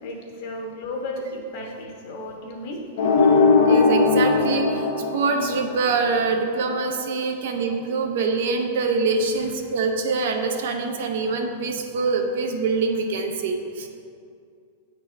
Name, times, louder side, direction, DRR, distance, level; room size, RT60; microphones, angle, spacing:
voice 1, 0.0-2.8, left 1 dB, 45° left, 0 dB, 1.1 m, -34 dB
sound 1, 3.0-6.0, left 4 dB, 65° left, 0.7 m, -18 dB
voice 2, 3.6-13.9, right 4 dB, 60° right, 3 dB, 0.8 m, -24 dB
8.3 x 4.3 x 4.5 m, 2.3 s
supercardioid pair, 170°, 0 cm